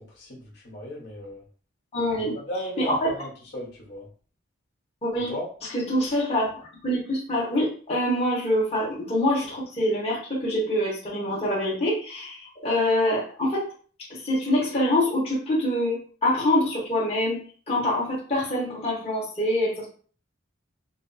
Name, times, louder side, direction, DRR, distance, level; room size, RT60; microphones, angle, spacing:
voice 1, 0.1-1.4 2.1-4.1 5.2-5.5, equal, 55° left, -4 dB, 1.5 m, -36 dB
voice 2, 1.9-2.4 2.9-3.1 5.0-5.3 5.7-6.5 6.8-13.7 14.1-19.9, left 1 dB, 30° left, -7 dB, 1.4 m, -25 dB
6.1 x 2.1 x 2.9 m, 0.42 s
head